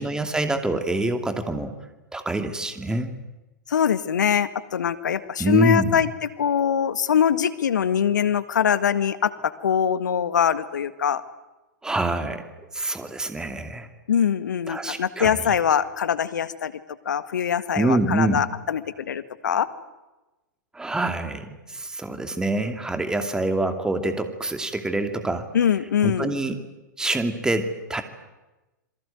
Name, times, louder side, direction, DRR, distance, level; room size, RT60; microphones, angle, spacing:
voice 1, 0.0-1.7 2.1-3.1 5.4-6.0 11.8-12.5 12.7-13.9 14.7-15.4 17.7-18.5 20.7-25.5 26.0-26.5 27.0-28.0, right 2 dB, 5° right, 7 dB, 2.6 m, -26 dB
voice 2, 3.7-6.1 6.4-11.2 14.1-16.7 17.0-19.7 25.5-26.3, left 8 dB, 70° left, 13 dB, 1.7 m, -23 dB
27.5 x 23.0 x 9.2 m, 1.1 s
figure-of-eight pair, 105°, 10 cm